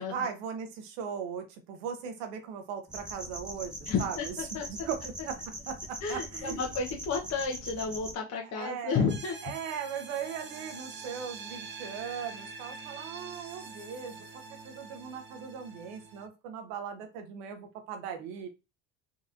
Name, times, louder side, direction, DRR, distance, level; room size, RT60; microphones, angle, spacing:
voice 1, 0.0-4.4 4.7-5.4 5.7-6.7 8.4-9.1 9.4-18.5, right 7 dB, 80° right, 5 dB, 1.0 m, -39 dB
sound 1, 2.9-8.1, right 1 dB, ahead, 1.1 m, -42 dB
voice 2, 3.9-4.7 6.0-9.4, left 5 dB, 45° left, 0 dB, 1.1 m, -31 dB
sound 2, 9.1-16.3, right 4 dB, 30° right, 0.8 m, -45 dB
3.9 x 3.0 x 2.5 m, 0.28 s
supercardioid pair, 100°, 36 cm